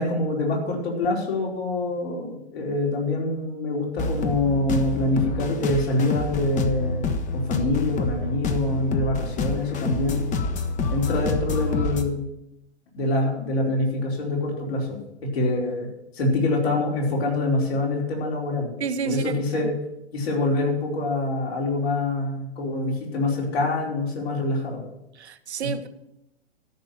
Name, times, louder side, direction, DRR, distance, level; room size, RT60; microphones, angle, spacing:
voice 1, 0.0-7.0 7.3-10.3 10.9-12.2 12.9-15.9 16.1-18.7 19.0-19.7 20.1-24.8 25.6-25.7, left 2 dB, 60° left, 4.6 m, -25 dB
sound 1, 4.0-12.0, left 3 dB, 20° left, 1.2 m, -27 dB
voice 2, 18.8-19.2 19.5-19.7 25.2-25.9, right 6 dB, 70° right, 1.1 m, -30 dB
13.5 x 6.1 x 9.2 m
figure-of-eight pair, 110°, 34 cm